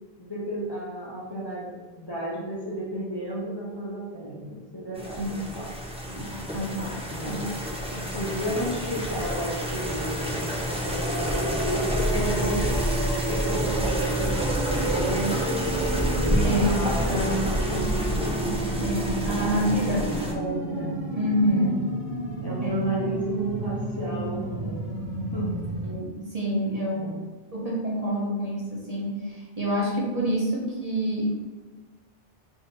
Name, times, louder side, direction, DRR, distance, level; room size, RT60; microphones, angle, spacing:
voice 1, 0.2-5.7 7.1-7.5 7.9-12.7 13.3-17.9 19.7-19.9 21.5-21.7 22.4-25.0 25.3-25.6 26.9-27.2, right 1 dB, 25° left, -7 dB, 0.8 m, -33 dB
sound 1, 5.0-20.3, equal, 10° right, 0.5 m, -28 dB
voice 2, 6.1-6.9 7.2-7.4 16.3-21.8 22.6-22.8 25.8-27.1 27.5-31.4, equal, 40° right, -5 dB, 1.0 m, -28 dB
sound 2, 11.0-25.9, right 2 dB, 60° right, 1.4 m, -31 dB
3.6 x 2.8 x 4.2 m, 1.4 s
omnidirectional pair, 1.1 m